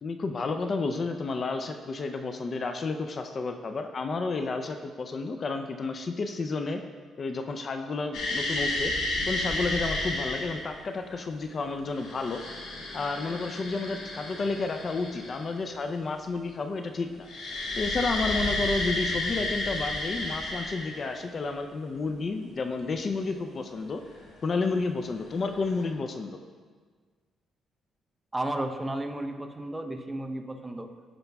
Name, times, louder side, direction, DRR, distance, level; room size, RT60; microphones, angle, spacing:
voice 1, 0.0-6.8 7.2-8.9 9.3-12.4 12.9-17.3 17.7-24.0 24.4-26.4, left 3 dB, 45° left, 6 dB, 0.5 m, -31 dB
sound 1, 8.1-10.6 11.8-15.6 17.3-21.2 24.2-24.3 25.5-25.9, left 2 dB, 85° left, 1.8 m, -32 dB
voice 2, 28.3-30.9, right 1 dB, 10° right, 4 dB, 0.7 m, -33 dB
15.0 x 5.2 x 2.3 m, 1.5 s
cardioid pair, 90°, 0 cm